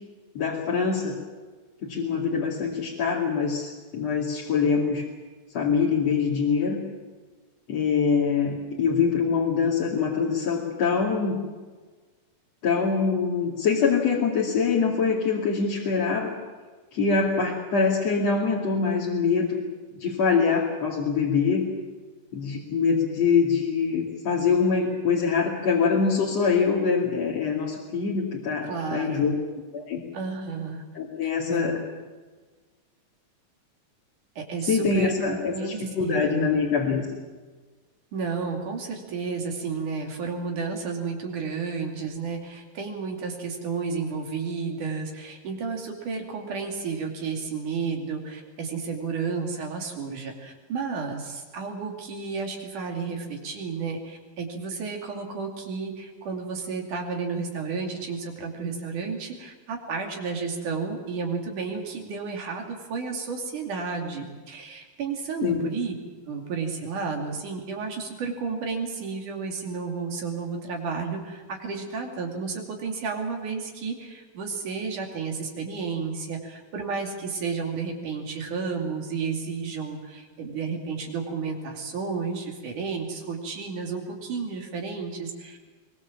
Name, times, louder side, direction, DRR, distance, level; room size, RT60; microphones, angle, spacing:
voice 1, 0.4-1.2 1.8-5.1 5.5-6.8 7.7-11.4 12.6-16.3 16.9-19.6 19.9-21.7 22.3-29.4 29.7-30.0 30.9-31.8 34.7-37.1 65.4-65.7, left 5 dB, 50° left, -4 dB, 3.5 m, -24 dB
voice 2, 28.6-29.3 30.1-30.8 31.2-31.8 34.4-36.5 38.1-65.9 66.3-85.6, right 5 dB, 65° right, 2 dB, 4.2 m, -32 dB
23.5 x 22.0 x 7.4 m, 1.4 s
omnidirectional pair, 4.0 m